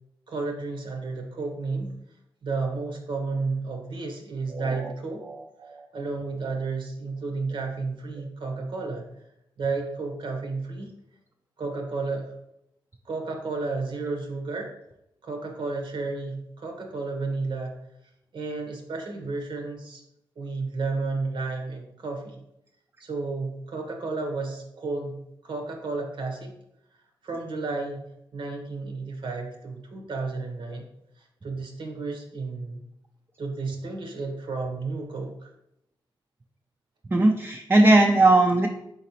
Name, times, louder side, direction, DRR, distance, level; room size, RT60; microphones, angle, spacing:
voice 1, 0.3-2.0 2.4-5.2 5.9-9.0 9.6-10.9 11.6-12.4 13.0-14.7 15.2-17.8 18.3-20.0 20.4-22.4 23.0-25.2 25.4-26.5 27.2-28.0 28.3-30.9 31.4-32.8 33.4-35.5, right 3 dB, 65° right, 3 dB, 0.9 m, -32 dB
voice 2, 4.5-4.9 5.2-5.9 37.1-38.7, right 2 dB, 25° right, 2 dB, 0.4 m, -20 dB
3.9 x 3.9 x 2.9 m, 0.80 s
cardioid pair, 55°, 9 cm